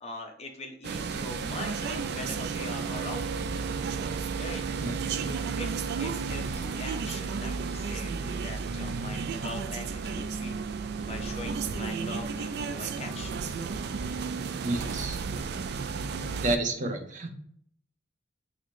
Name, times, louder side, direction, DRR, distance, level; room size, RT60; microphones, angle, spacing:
voice 1, 0.0-3.5 4.4-4.6 5.2-5.7 6.0-10.6 11.0-13.5, left 2 dB, 35° left, 3 dB, 0.8 m, -41 dB
sound 1, 0.8-16.6, right 5 dB, 60° right, 0.3 m, -33 dB
voice 2, 4.8-5.5 14.6-15.2 15.5-15.6 16.4-17.3, right 2 dB, 40° right, 3 dB, 0.7 m, -31 dB
3.1 x 2.8 x 4.3 m, 0.62 s
head